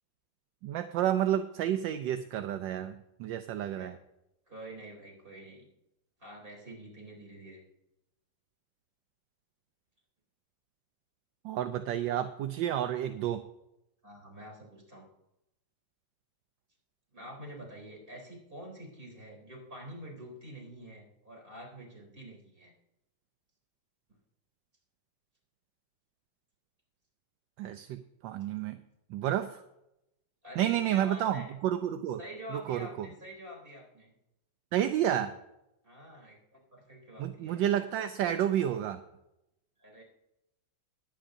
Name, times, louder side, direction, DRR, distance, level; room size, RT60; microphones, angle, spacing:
voice 1, 0.6-3.9 11.4-13.4 27.6-28.8 29.1-29.6 30.6-32.2 32.5-33.1 34.7-35.3 37.2-39.0, right 11 dB, 75° right, 9 dB, 1.3 m, -30 dB
voice 2, 4.5-5.7 6.2-7.6 14.0-15.0 17.1-22.7 30.4-31.5 32.2-34.1 35.8-36.4 36.7-37.6 39.8-40.0, equal, 25° right, -1 dB, 3.7 m, -47 dB
21.0 x 9.0 x 2.6 m, 0.86 s
omnidirectional pair, 2.1 m